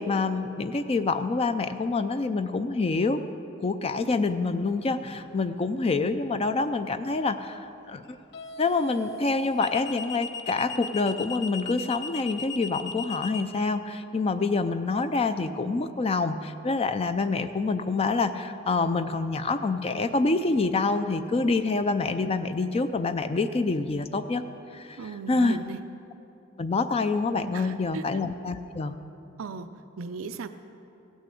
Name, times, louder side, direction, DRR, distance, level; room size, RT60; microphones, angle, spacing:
voice 1, 0.0-3.2 3.6-7.6 7.9-8.1 8.6-24.4 24.7-25.0 25.3-25.6 26.6-29.0, left 3 dB, 30° left, 10 dB, 0.4 m, -26 dB
sound 1, 5.0-5.4 8.3-13.4, left 5 dB, 60° left, 0.8 m, -37 dB
voice 2, 25.0-25.8 27.5-28.1 29.4-29.7 30.0-30.5, right 4 dB, 80° right, 9 dB, 0.5 m, -37 dB
15.5 x 6.3 x 8.4 m, 2.8 s
head